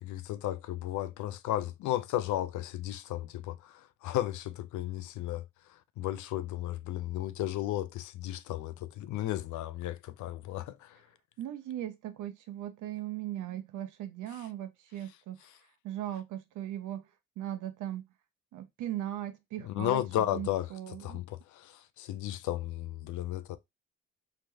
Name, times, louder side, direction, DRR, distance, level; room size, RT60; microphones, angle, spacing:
voice 1, 0.0-11.1 19.6-23.6, left 14 dB, 75° left, 0.5 m, -34 dB
voice 2, 11.4-15.4 15.8-17.1 17.4-18.0 18.5-20.0 20.3-21.2, right 12 dB, 80° right, 0.7 m, -38 dB
3.2 x 2.9 x 2.2 m
cardioid pair, 90°, 30 cm